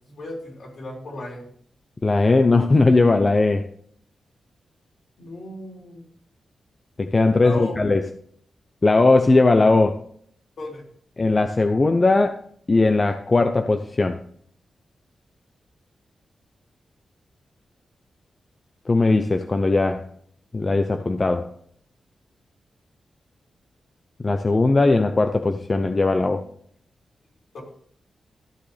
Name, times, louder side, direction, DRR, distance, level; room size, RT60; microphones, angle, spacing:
voice 1, 0.1-1.4 5.2-6.0 7.4-7.8 10.6-10.8 27.5-27.6, left 1 dB, 60° left, -2 dB, 3.9 m, -35 dB
voice 2, 2.0-3.7 7.0-8.0 8.8-10.0 11.2-12.4 12.7-14.2 18.9-20.0 20.5-21.5 24.2-26.5, left 3 dB, 30° left, 7 dB, 0.6 m, -19 dB
13.5 x 7.6 x 3.4 m, 0.63 s
wide cardioid pair, 120°, 0 cm